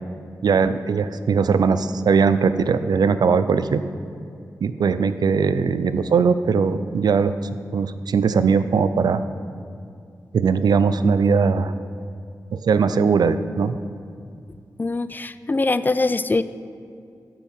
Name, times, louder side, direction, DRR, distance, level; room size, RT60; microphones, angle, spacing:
voice 1, 0.4-3.8 4.6-9.2 10.3-11.7 12.5-13.8, right 5 dB, 75° right, 12 dB, 0.4 m, -20 dB
voice 2, 14.8-16.4, left 3 dB, 25° left, 13 dB, 0.3 m, -22 dB
13.0 x 4.5 x 5.4 m, 2.4 s
cardioid pair, 65°, 7 cm